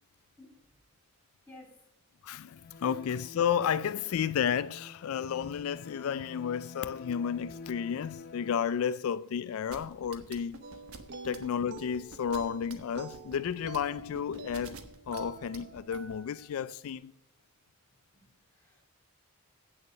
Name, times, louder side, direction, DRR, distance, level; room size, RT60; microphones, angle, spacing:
voice 1, 0.4-0.7 1.4-1.9 9.6-9.7 17.9-18.8, left 2 dB, 5° left, 3.1 m, -56 dB
voice 2, 2.2-10.6 11.2-14.8 15.1-17.1, left 8 dB, 70° left, 0.3 m, -32 dB
sound 1, 2.5-8.6, left 3 dB, 45° left, 0.8 m, -48 dB
sound 2, 9.7-16.1, right 3 dB, 75° right, 1.2 m, -47 dB
sound 3, 10.6-16.5, right 4 dB, 50° right, 0.8 m, -47 dB
8.7 x 6.7 x 6.5 m
head